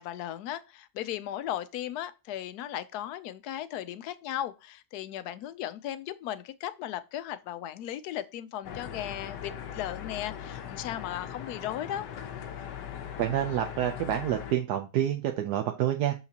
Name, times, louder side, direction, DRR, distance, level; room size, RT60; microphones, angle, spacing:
voice 1, 0.0-12.1, left 12 dB, 75° left, 1.0 m, -36 dB
Kings Cross security announcement f, 8.6-14.5, left 9 dB, 90° left, 1.4 m, -40 dB
voice 2, 13.2-16.1, right 11 dB, 75° right, 1.2 m, -28 dB
6.6 x 5.7 x 2.8 m
omnidirectional pair, 1.8 m